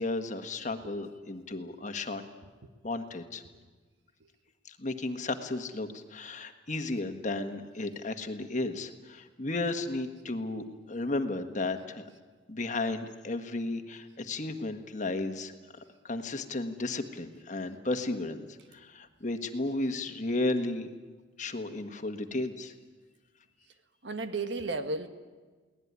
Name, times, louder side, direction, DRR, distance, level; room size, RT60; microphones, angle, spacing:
voice 1, 0.0-2.2 2.8-3.4 4.6-12.0 12.5-15.5 16.0-18.4 18.7-20.9 21.4-22.7, left 2 dB, 40° left, 6 dB, 1.5 m, -34 dB
voice 2, 24.0-25.1, right 3 dB, 65° right, 8 dB, 1.6 m, -33 dB
23.0 x 18.0 x 9.6 m, 1.4 s
head